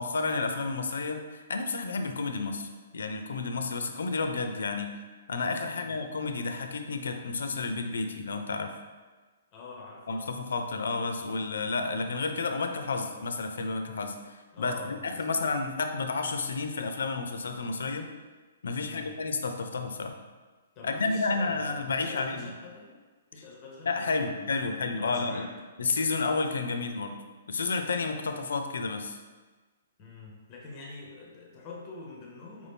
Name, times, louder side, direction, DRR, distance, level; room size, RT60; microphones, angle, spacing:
voice 1, 0.0-5.0 5.3-8.7 10.1-18.1 18.6-20.1 20.8-22.5 23.9-25.5 25.8-27.2 27.5-29.2, left 3 dB, 90° left, 6 dB, 0.5 m, -31 dB
voice 2, 5.6-6.0 9.5-10.3 14.5-15.5 18.8-19.1 20.8-22.9 23.3-25.5 30.0-32.7, left 3 dB, 20° left, -2 dB, 0.5 m, -46 dB
4.7 x 2.6 x 3.4 m, 1.3 s
hypercardioid pair, 175°, 0 cm